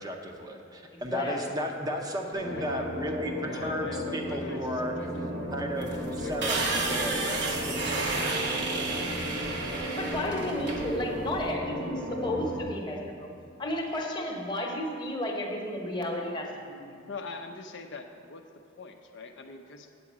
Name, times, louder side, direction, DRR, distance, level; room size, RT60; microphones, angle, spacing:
voice 1, 0.0-4.9 5.5-7.7, equal, 20° right, 2 dB, 0.6 m, -34 dB
voice 2, 0.9-1.4 9.9-13.3 13.6-16.9, left 1 dB, 20° left, 0 dB, 1.0 m, -33 dB
voice 3, 2.3-2.9 3.3-8.6 17.1-18.4 18.8-19.9, left 3 dB, 60° left, 5 dB, 0.5 m, -44 dB
sound 1, 2.3-12.6, equal, 85° right, 1.5 m, -35 dB
sound 2, 5.8-11.5, right 3 dB, 55° right, 1.0 m, -32 dB
8.1 x 4.8 x 7.3 m, 2.4 s
head